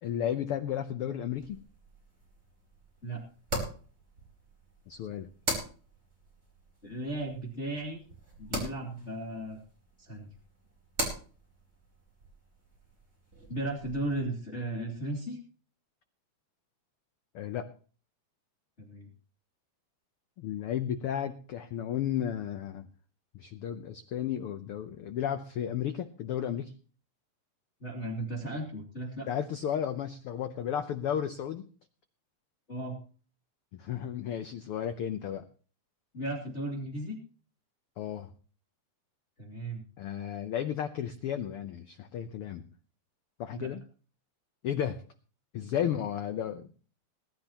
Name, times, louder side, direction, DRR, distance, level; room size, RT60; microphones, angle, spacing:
voice 1, 0.0-1.6 4.9-5.3 17.3-17.7 20.4-22.9 23.3-26.7 29.3-31.6 33.7-35.5 38.0-38.3 40.0-42.7 43.4-43.8 44.6-45.0 45.5-46.7, left 9 dB, 85° left, 9 dB, 1.2 m, -33 dB
sound 1, 1.4-14.2, right 1 dB, 20° right, 4.6 m, -41 dB
voice 2, 6.8-8.0 8.4-9.6 10.0-10.3 13.5-15.4 18.8-19.1 27.8-29.3 32.7-33.0 36.1-37.2 39.4-39.8 43.5-43.7, right 1 dB, 25° left, -2 dB, 2.7 m, -35 dB
20.5 x 12.0 x 2.9 m, 0.39 s
omnidirectional pair, 3.5 m